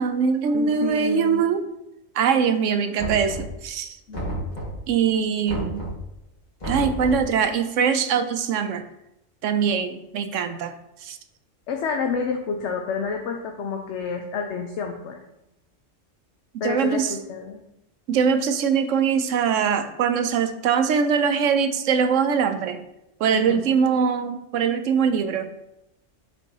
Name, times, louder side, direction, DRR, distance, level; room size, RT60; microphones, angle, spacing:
voice 1, 0.0-1.6 2.1-4.0 4.9-5.9 6.6-8.9 9.4-10.7 11.0-11.2 16.6-17.1 18.1-22.8 23.2-25.5, right 6 dB, 80° right, 9 dB, 1.0 m, -22 dB
voice 2, 0.5-1.4 4.1-4.4 11.7-15.2 16.6-17.6 23.3-23.7, left 5 dB, 70° left, 3 dB, 0.9 m, -29 dB
Knock, 3.0-3.7 4.1-4.9 5.5-6.1 6.6-7.3, right 1 dB, 35° left, 1.8 m, -31 dB
7.0 x 5.2 x 2.9 m, 0.84 s
omnidirectional pair, 1.3 m